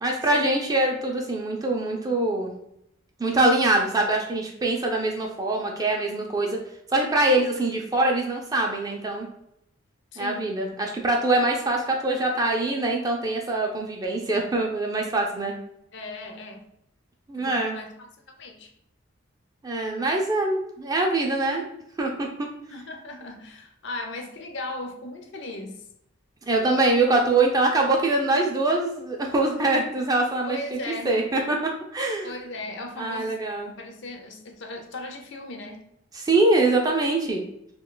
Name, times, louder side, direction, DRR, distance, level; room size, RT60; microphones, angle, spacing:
voice 1, 0.0-2.5 3.2-6.6 6.9-9.3 10.2-15.5 17.3-17.8 19.6-21.7 22.0-22.5 26.5-30.6 31.0-31.6 31.9-32.3 33.0-33.7 36.1-37.4, right 2 dB, 15° right, 0 dB, 0.4 m, -23 dB
voice 2, 10.1-10.5 15.9-16.6 17.4-18.1 18.4-18.7 22.7-25.8 30.5-31.1 32.2-33.4 33.8-35.8, left 2 dB, 55° left, 4 dB, 0.5 m, -37 dB
2.7 x 2.2 x 3.7 m, 0.77 s
head